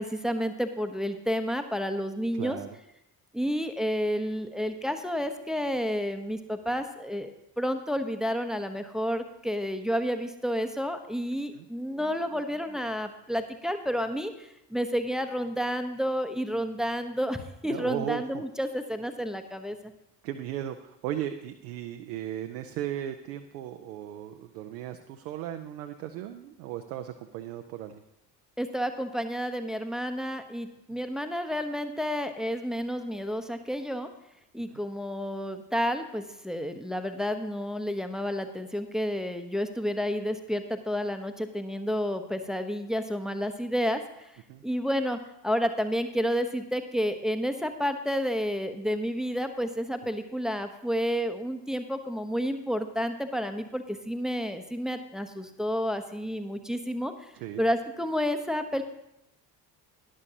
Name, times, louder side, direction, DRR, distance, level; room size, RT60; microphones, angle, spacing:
voice 1, 0.0-2.6 3.3-19.9 28.6-34.1 34.5-44.4 44.6-57.3 57.6-58.8, equal, ahead, 7 dB, 0.8 m, -30 dB
voice 2, 2.3-2.7 11.5-11.7 17.7-18.2 20.2-28.0 44.5-44.6 57.3-57.6, right 11 dB, 65° right, 7 dB, 0.7 m, -36 dB
12.5 x 10.5 x 2.8 m, 0.83 s
figure-of-eight pair, 50°, 49 cm